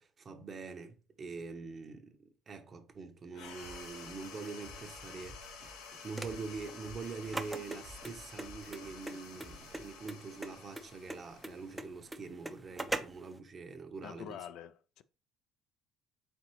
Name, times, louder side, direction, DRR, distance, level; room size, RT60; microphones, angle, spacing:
voice 1, 0.0-14.4, right 4 dB, 35° right, 0.8 m, -44 dB
sound 1, 3.3-12.2, left 6 dB, 90° left, 0.8 m, -51 dB
sound 2, 3.6-10.0, right 1 dB, 65° right, 1.1 m, -56 dB
sound 3, 6.1-13.3, right 2 dB, 10° right, 0.5 m, -41 dB
voice 2, 14.0-15.0, left 10 dB, 70° left, 0.3 m, -46 dB
4.4 x 3.7 x 3.1 m
cardioid pair, 115°, 0 cm